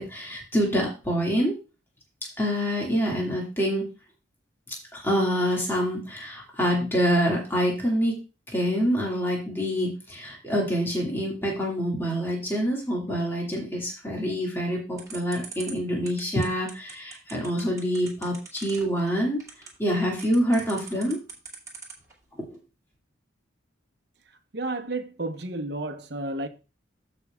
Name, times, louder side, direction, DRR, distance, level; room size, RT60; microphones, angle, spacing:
voice 1, 0.0-1.5 2.4-3.9 4.9-8.1 8.5-19.4 19.8-21.2 22.5-22.6, equal, 10° left, 2.2 m, -26 dB
sound 1, 15.0-22.1, right 6 dB, 15° right, 2.4 m, -41 dB
voice 2, 24.5-26.5, right 2 dB, 60° right, 1.0 m, -31 dB
15.0 x 5.5 x 2.4 m
head